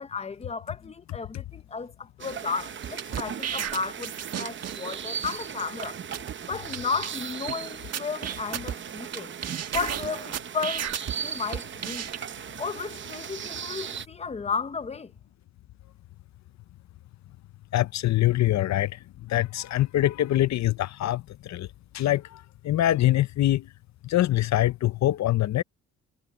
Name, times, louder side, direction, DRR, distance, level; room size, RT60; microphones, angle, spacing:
voice 1, 0.0-6.0 6.5-9.3 9.7-10.9 11.2-12.1 12.6-15.1, left 5 dB, 20° left, 0.9 m, -33 dB
sound 1, 2.2-14.1, right 8 dB, 40° right, 0.7 m, -38 dB
sound 2, 2.8-4.9 5.2-5.4 5.8-5.9 6.1-6.3 6.7-6.8 7.0-7.5 7.9-9.2 9.4-11.1 11.5-12.2, right 9 dB, 55° right, 1.5 m, -33 dB
voice 2, 17.7-19.0 19.3-21.7 21.9-23.6 24.0-25.6, left 14 dB, 65° left, 0.7 m, -24 dB
cardioid pair, 90°, 30 cm